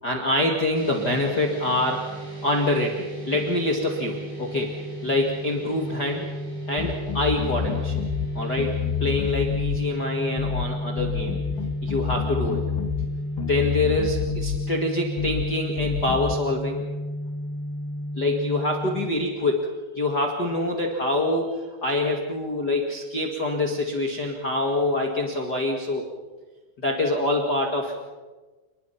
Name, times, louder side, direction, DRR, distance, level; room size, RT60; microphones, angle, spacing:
voice 1, 0.0-2.1 2.4-4.7 5.0-6.3 6.7-8.0 8.3-11.4 11.8-12.6 13.5-16.9 18.1-26.0 26.8-28.0, left 2 dB, 65° left, 1 dB, 1.0 m, -25 dB
sound 1, 0.7-19.1, equal, 70° right, 9.4 m, -32 dB
sound 2, 6.8-8.3 8.6-9.8 10.4-10.7 11.0-13.1 13.4-14.6 15.2-15.5 15.8-16.4, left 11 dB, 85° left, 3.4 m, -29 dB
28.0 x 21.0 x 5.8 m, 1.3 s
omnidirectional pair, 5.6 m